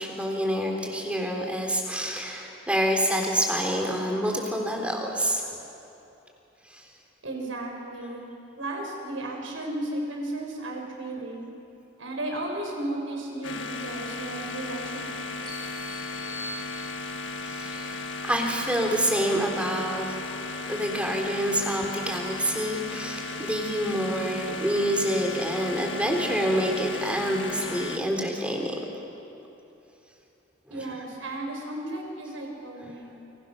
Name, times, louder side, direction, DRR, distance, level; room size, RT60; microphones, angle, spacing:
voice 1, 0.0-5.5 6.7-6.9 17.4-20.2 20.7-28.8 30.7-30.8 32.8-32.9, equal, 5° right, 1 dB, 3.6 m, -27 dB
voice 2, 7.2-11.5 12.0-15.2 30.7-33.1, right 1 dB, 90° right, 1 dB, 5.9 m, -34 dB
sound 1, 13.4-28.0, left 3 dB, 70° left, 1.4 m, -35 dB
sound 2, 15.5-17.4, equal, 50° right, 3.6 m, -42 dB
29.5 x 26.0 x 6.4 m, 2.9 s
head